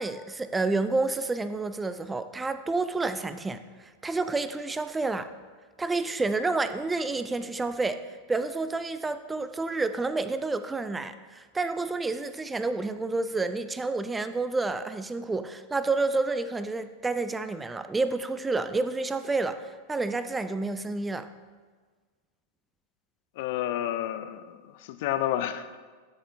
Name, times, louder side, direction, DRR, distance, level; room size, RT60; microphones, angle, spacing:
voice 1, 0.0-5.3 5.8-8.0 8.3-21.3, right 3 dB, 10° right, 12 dB, 0.4 m, -29 dB
voice 2, 23.4-24.6 24.9-25.8, left 12 dB, 50° left, 11 dB, 0.5 m, -30 dB
13.0 x 7.4 x 2.6 m, 1.4 s
figure-of-eight pair, 90°, 0 cm